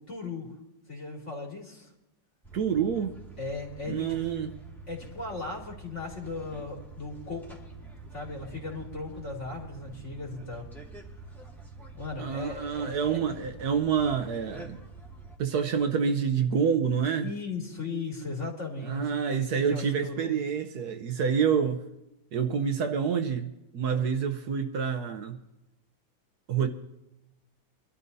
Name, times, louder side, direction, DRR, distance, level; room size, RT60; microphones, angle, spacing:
voice 1, 0.1-0.5 0.9-1.9 3.4-4.1 4.9-7.6 8.1-10.7 11.9-13.2 17.2-19.2 19.5-20.3 23.9-24.1, left 3 dB, 40° left, -1 dB, 3.1 m, -37 dB
sound 1, 2.4-15.4, right 3 dB, ahead, 1.9 m, -46 dB
voice 2, 2.5-3.1 3.9-4.5 12.2-14.8 15.4-17.3 18.8-21.8 22.3-25.4 26.5-26.7, right 7 dB, 65° right, 7 dB, 1.3 m, -27 dB
25.0 x 12.5 x 2.7 m, 0.94 s
omnidirectional pair, 1.9 m